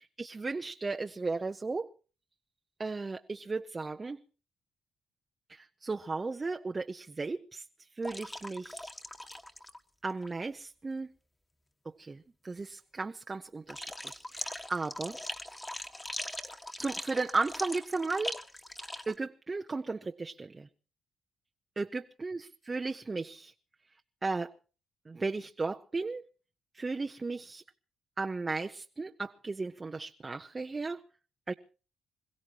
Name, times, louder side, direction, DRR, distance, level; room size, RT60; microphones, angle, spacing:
voice 1, 0.0-1.9 2.8-4.2 5.5-7.6 7.9-8.9 10.0-11.1 11.8-15.2 16.8-18.4 19.1-20.7 21.8-23.5 24.2-24.5 25.1-26.3 26.7-27.6 28.2-31.0 31.5-31.6, right 3 dB, 25° right, 6 dB, 0.8 m, -35 dB
sound 1, 8.0-9.8 10.1-10.3 13.7-19.1, left 1 dB, 15° left, 1.6 m, -41 dB
26.5 x 16.0 x 3.0 m, 0.36 s
cardioid pair, 90°, 0 cm